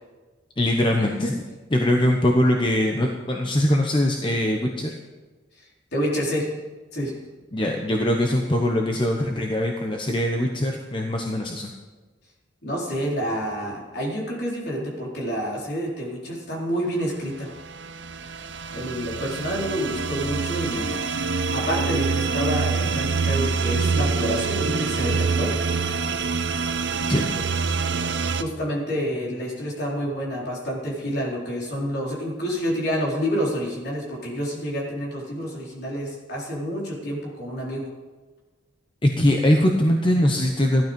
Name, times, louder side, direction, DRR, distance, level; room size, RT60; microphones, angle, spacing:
voice 1, 0.6-1.4 1.7-5.0 7.5-11.7 27.1-27.5 39.0-40.8, left 1 dB, 25° left, 2 dB, 1.0 m, -22 dB
voice 2, 5.9-6.5 6.9-7.1 12.6-17.5 18.7-20.9 21.5-25.5 28.4-37.9, equal, 55° left, -3 dB, 4.2 m, -28 dB
sound 1, 17.5-28.4, right 4 dB, 65° right, 0.7 m, -25 dB
15.5 x 12.0 x 5.3 m, 1.3 s
head